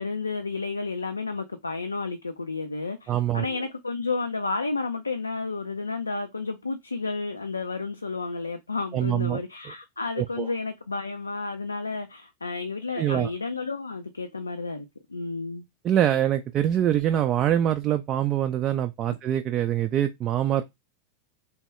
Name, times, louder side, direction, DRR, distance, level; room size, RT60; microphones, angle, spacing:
voice 1, 0.0-15.7, left 3 dB, 80° left, 0.3 m, -31 dB
voice 2, 3.1-3.5 8.9-9.4 10.2-10.5 13.0-13.3 15.8-20.7, right 11 dB, 30° right, 0.3 m, -24 dB
3.4 x 2.2 x 2.9 m
figure-of-eight pair, 90°, 0 cm